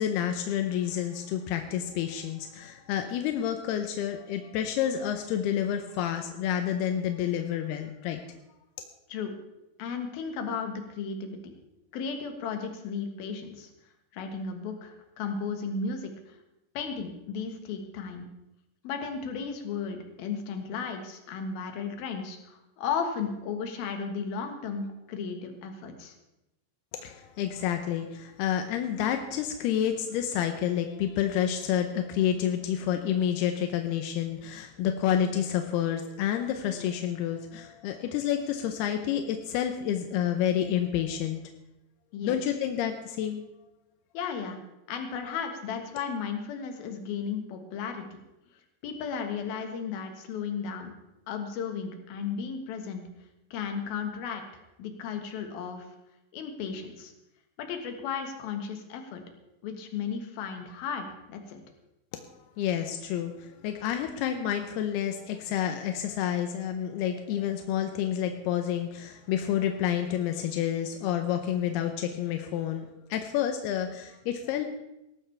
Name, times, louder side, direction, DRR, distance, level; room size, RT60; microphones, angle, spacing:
voice 1, 0.0-8.2 26.9-41.4 42.2-43.4 62.6-74.7, left 10 dB, 80° left, 6 dB, 2.4 m, -29 dB
voice 2, 9.8-11.4 11.9-13.7 14.1-16.4 16.7-18.3 18.8-26.1 42.1-42.4 44.1-44.6 44.9-48.0 48.8-50.9 51.3-53.0 53.5-55.9 56.3-57.1 57.6-59.2 59.6-61.6, left 6 dB, 65° left, 5 dB, 2.9 m, -34 dB
18.0 x 14.0 x 3.4 m, 0.91 s
omnidirectional pair, 5.4 m